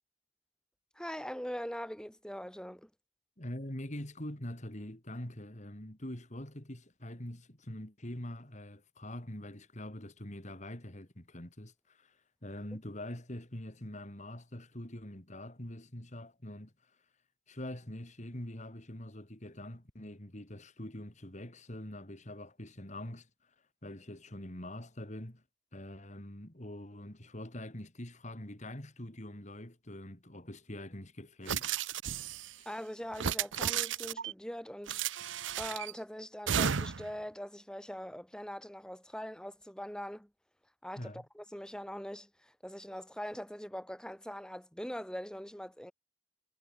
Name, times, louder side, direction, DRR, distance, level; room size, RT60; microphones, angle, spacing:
voice 1, 0.9-2.9 12.7-12.8 32.7-35.0 35.6-40.3 40.8-45.9, equal, 5° left, 7.1 m, -42 dB
voice 2, 3.4-16.9 17.5-23.3 23.8-25.4 25.7-31.7 41.0-41.2, left 1 dB, 40° left, 3.3 m, -44 dB
sound 1, 31.5-32.5 33.1-34.3 34.9-35.9 36.5-37.1, right 8 dB, 85° right, 0.8 m, -33 dB
head